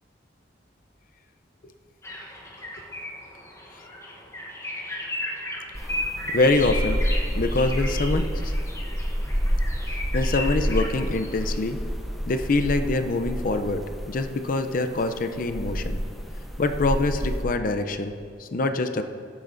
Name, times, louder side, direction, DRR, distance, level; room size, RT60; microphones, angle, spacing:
sound 1, 2.0-11.6, left 1 dB, 15° left, 0.9 m, -35 dB
sound 2, 5.8-17.4, equal, ahead, 0.6 m, -29 dB
voice 1, 6.3-7.0 7.3-8.5 9.8-11.8 12.3-13.8 14.1-16.0 16.6-19.0, left 2 dB, 45° left, 8 dB, 0.5 m, -25 dB
13.5 x 8.9 x 2.6 m, 2.2 s
head